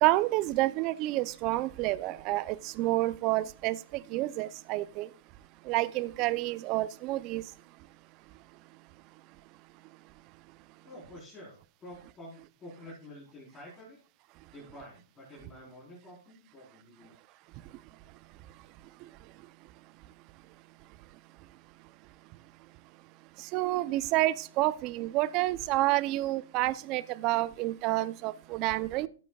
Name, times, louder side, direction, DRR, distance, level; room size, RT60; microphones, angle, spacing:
voice 1, 0.0-3.8 4.1-5.1 5.7-7.4 23.5-29.1, right 17 dB, 35° right, 0.6 m, -29 dB
voice 2, 10.8-14.0 14.5-17.2, left 1 dB, 20° left, 4.3 m, -49 dB
13.5 x 9.0 x 2.4 m
hypercardioid pair, 135°, 0 cm